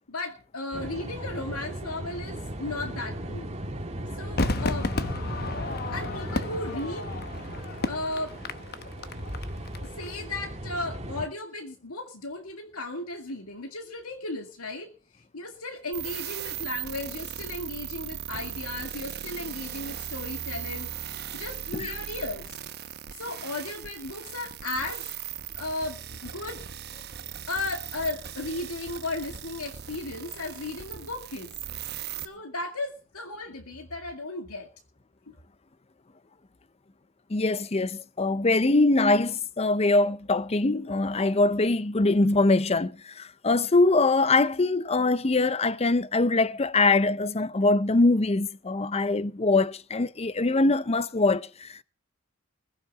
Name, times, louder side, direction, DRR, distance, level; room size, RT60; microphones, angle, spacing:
voice 1, 0.1-3.5 4.1-4.9 5.9-7.1 7.9-8.3 9.8-20.9 21.3-22.5 23.2-25.1 25.6-26.6 27.5-31.6 32.2-34.7 35.3-35.4, left 2 dB, 90° left, 2.2 m, -35 dB
sound 1, 0.7-11.3, right 1 dB, 30° right, 2.1 m, -37 dB
Crowd / Fireworks, 4.4-9.8 10.0-10.1, left 2 dB, 45° left, 1.0 m, -32 dB
sound 2, 15.9-32.2, right 10 dB, 50° right, 0.9 m, -38 dB
voice 2, 37.3-51.8, left 2 dB, 30° left, 0.6 m, -23 dB
21.0 x 7.3 x 6.7 m
head